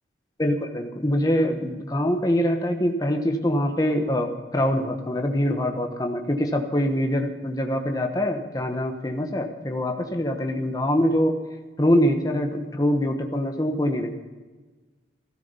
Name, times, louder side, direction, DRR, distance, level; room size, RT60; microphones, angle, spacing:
voice 1, 0.4-11.4 11.8-14.1, equal, 20° left, 4 dB, 1.1 m, -24 dB
15.0 x 12.5 x 5.5 m, 1.3 s
head